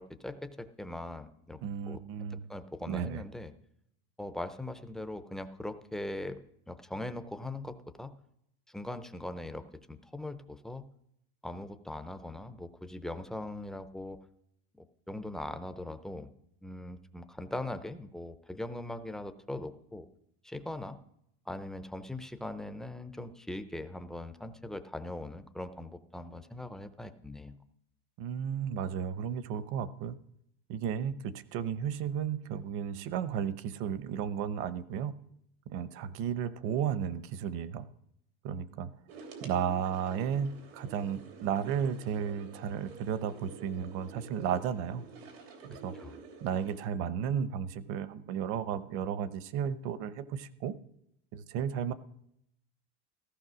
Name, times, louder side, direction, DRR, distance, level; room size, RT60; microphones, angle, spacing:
voice 1, 0.0-1.6 1.9-2.0 2.3-3.5 4.2-6.4 6.7-8.1 8.7-10.8 11.4-14.2 14.7-16.3 16.6-20.1 20.4-21.0 21.5-27.6 38.5-38.8 46.0-46.1, left 1 dB, ahead, 10 dB, 0.5 m, -41 dB
voice 2, 1.6-2.5 2.9-3.2 28.2-30.2 30.7-35.1 35.7-37.8 38.4-38.9 39.4-45.0 45.6-45.9 46.4-50.8 51.3-51.9, right 8 dB, 45° right, 15 dB, 0.9 m, -33 dB
sound 1, 39.1-46.8, right 4 dB, 85° right, 3.3 m, -49 dB
15.0 x 14.5 x 6.2 m, 0.75 s
supercardioid pair, 165°, 30 cm